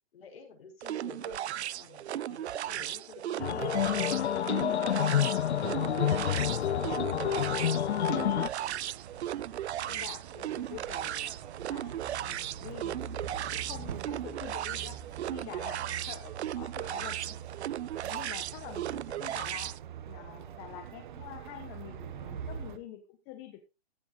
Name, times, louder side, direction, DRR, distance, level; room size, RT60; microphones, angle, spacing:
voice 1, 0.1-1.4 1.8-4.5 5.0-8.2 16.9-17.1, left 5 dB, 65° left, 4 dB, 5.8 m, -51 dB
sound 1, 0.8-19.8, right 12 dB, 80° right, 0.5 m, -36 dB
sound 2, 3.4-8.5, left 10 dB, 85° left, 0.7 m, -28 dB
sound 3, 5.4-22.8, right 8 dB, 45° right, 1.3 m, -45 dB
voice 2, 9.5-11.3 11.7-13.1 13.5-15.0 15.3-17.4 18.0-19.7 20.1-23.7, left 11 dB, 20° left, 6 dB, 1.1 m, -46 dB
15.0 x 9.5 x 2.5 m, 0.27 s
hypercardioid pair, 155°, 33 cm